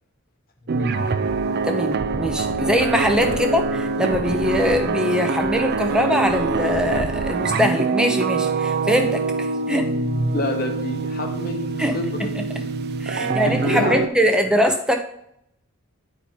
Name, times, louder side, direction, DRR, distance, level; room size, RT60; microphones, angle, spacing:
sound 1, 0.7-14.1, right 3 dB, 50° right, 0.5 m, -24 dB
voice 1, 1.7-9.9 11.8-12.0 13.0-15.0, equal, 5° right, 4 dB, 0.6 m, -22 dB
voice 2, 10.3-12.3 13.2-14.1, left 1 dB, 45° left, 3 dB, 1.0 m, -28 dB
9.7 x 4.4 x 4.3 m, 0.74 s
head